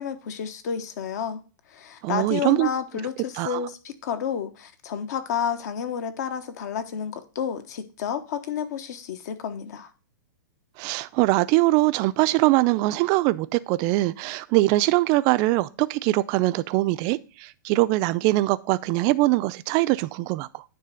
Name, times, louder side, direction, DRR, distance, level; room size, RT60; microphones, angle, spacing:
voice 1, 0.0-1.4 1.7-9.9, left 7 dB, 55° left, 1.2 m, -30 dB
voice 2, 2.0-2.7 3.4-3.6 10.8-20.6, right 19 dB, 35° right, 0.5 m, -22 dB
9.6 x 3.3 x 6.3 m
hypercardioid pair, 135°, 11 cm